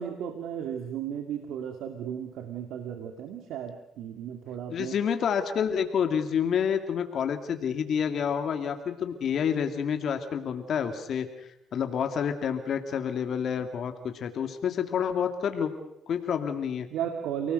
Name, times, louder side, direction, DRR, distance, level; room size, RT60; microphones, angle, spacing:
voice 1, 0.0-5.0 16.9-17.5, right 9 dB, 85° right, 6 dB, 2.1 m, -34 dB
voice 2, 4.7-15.7 16.1-16.9, left 7 dB, 65° left, 6 dB, 2.3 m, -29 dB
29.5 x 18.5 x 6.7 m, 0.82 s
cardioid pair, 90°, 0 cm